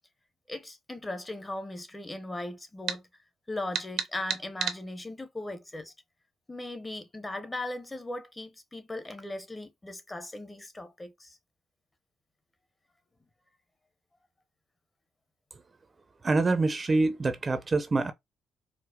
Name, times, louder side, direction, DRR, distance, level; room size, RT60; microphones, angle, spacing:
voice 1, 0.5-3.1 3.5-5.9 6.5-11.4, left 2 dB, 15° left, 0.7 m, -38 dB
sound 1, 2.9-3.0 3.7-4.8, right 7 dB, 70° right, 0.7 m, -31 dB
voice 2, 16.2-18.1, right 3 dB, 30° right, 0.5 m, -25 dB
4.6 x 2.1 x 2.2 m
cardioid pair, 90°, 0 cm